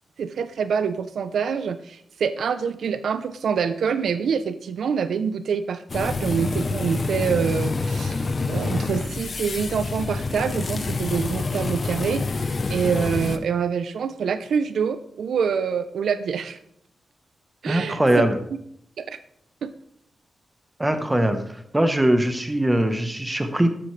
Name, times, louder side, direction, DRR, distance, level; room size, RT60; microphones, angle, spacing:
voice 1, 0.2-16.6 17.6-18.2 19.0-19.2 19.6-19.7, right 6 dB, 75° right, 12 dB, 0.6 m, -26 dB
sound 1, 5.9-13.4, left 3 dB, 35° left, 0.8 m, -27 dB
voice 2, 17.7-18.4 20.8-21.4 21.7-23.7, right 1 dB, 10° right, 8 dB, 1.0 m, -21 dB
12.5 x 12.5 x 3.3 m, 0.72 s
wide cardioid pair, 165°, 0 cm